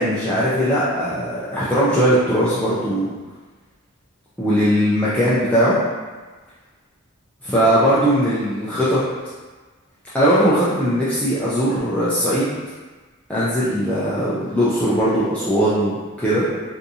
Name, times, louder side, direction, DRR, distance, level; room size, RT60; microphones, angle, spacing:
voice 1, 0.0-3.1 4.4-5.8 7.4-9.0 10.1-12.5 13.3-16.4, equal, 5° left, -11 dB, 0.4 m, -19 dB
3.6 x 2.7 x 2.6 m, 1.3 s
head